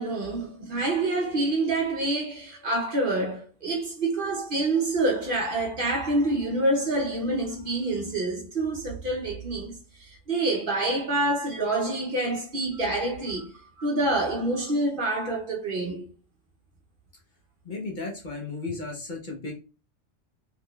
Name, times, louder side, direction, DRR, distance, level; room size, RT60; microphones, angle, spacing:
voice 1, 0.0-16.0, right 2 dB, 50° right, 0.8 m, -27 dB
voice 2, 17.6-19.5, left 3 dB, 45° left, 0.8 m, -34 dB
3.5 x 2.8 x 2.2 m
omnidirectional pair, 1.3 m